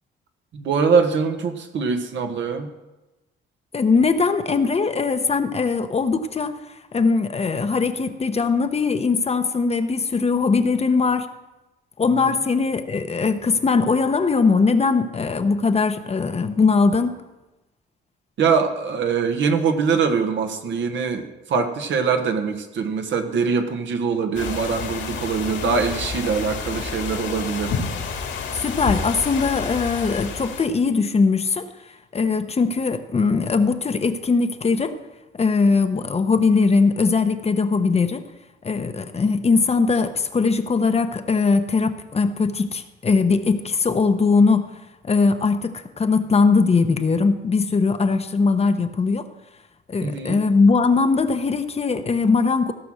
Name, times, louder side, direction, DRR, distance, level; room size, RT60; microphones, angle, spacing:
voice 1, 0.5-2.7 12.2-12.4 18.4-27.8 50.0-50.4, right 5 dB, 70° right, 6 dB, 1.4 m, -23 dB
voice 2, 3.7-11.3 12.0-17.2 28.5-31.7 32.1-35.0 35.4-38.3 38.6-44.7 45.0-49.3 49.9-52.7, left 4 dB, 30° left, 9 dB, 0.9 m, -20 dB
sound 1, 24.3-30.7, left 5 dB, 75° left, 2.3 m, -30 dB
15.5 x 6.0 x 6.3 m, 1.0 s
cardioid pair, 90°, 20 cm